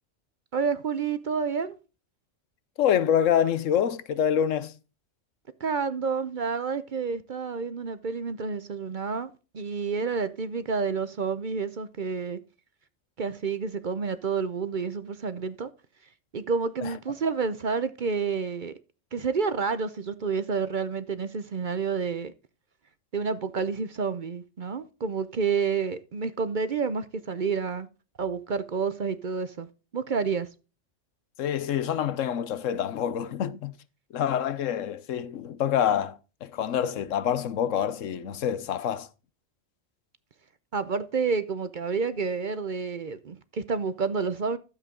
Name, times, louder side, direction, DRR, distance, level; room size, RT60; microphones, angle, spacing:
voice 1, 0.5-1.8 5.6-12.4 13.2-15.7 16.3-18.7 19.1-22.3 23.1-27.9 28.2-29.7 29.9-30.5 40.7-44.6, right 5 dB, 50° right, 0.7 m, -29 dB
voice 2, 2.8-4.7 16.8-16.9 31.4-33.8 34.1-39.1, left 9 dB, 90° left, 1.1 m, -26 dB
12.0 x 7.5 x 3.7 m
omnidirectional pair, 1.3 m